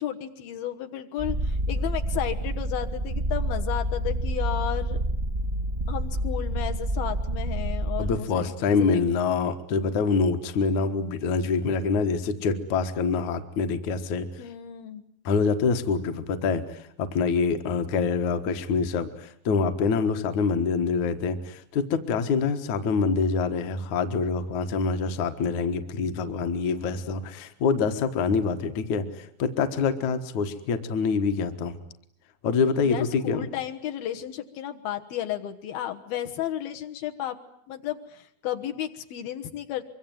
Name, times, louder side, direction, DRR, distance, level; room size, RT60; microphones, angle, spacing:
voice 1, 0.0-5.0 5.9-8.5 8.8-9.0 14.4-15.0 32.8-37.4 37.7-39.8, left 11 dB, 80° left, 6 dB, 3.2 m, -33 dB
Purr, 1.2-8.2, right 1 dB, 30° right, 0.9 m, -28 dB
voice 2, 8.0-14.3 15.3-31.8 32.4-33.5, left 5 dB, 60° left, 8 dB, 2.6 m, -25 dB
24.5 x 24.0 x 9.2 m, 0.69 s
omnidirectional pair, 4.3 m